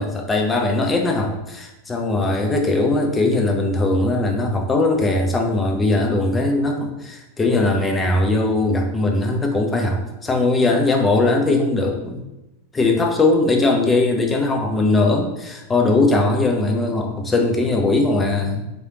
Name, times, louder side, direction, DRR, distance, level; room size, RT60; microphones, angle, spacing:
voice 1, 0.0-12.2 12.7-18.6, left 2 dB, 15° left, 2 dB, 0.6 m, -20 dB
3.9 x 3.2 x 2.9 m, 0.94 s
figure-of-eight pair, 90°, 0 cm